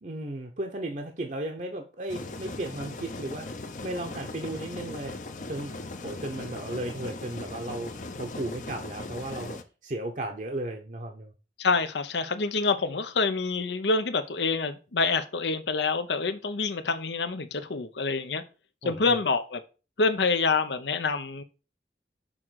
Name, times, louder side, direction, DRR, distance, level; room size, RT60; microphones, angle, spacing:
voice 1, 0.0-3.5 3.8-5.1 5.5-5.7 6.0-7.9 8.2-11.3 18.8-19.2, right 1 dB, 45° right, 0.8 m, -35 dB
sound 1, 2.1-9.6, left 2 dB, 45° left, 0.7 m, -39 dB
voice 2, 11.6-18.4 18.8-19.6 20.0-21.4, left 4 dB, 80° left, 0.8 m, -27 dB
6.4 x 3.7 x 6.2 m
head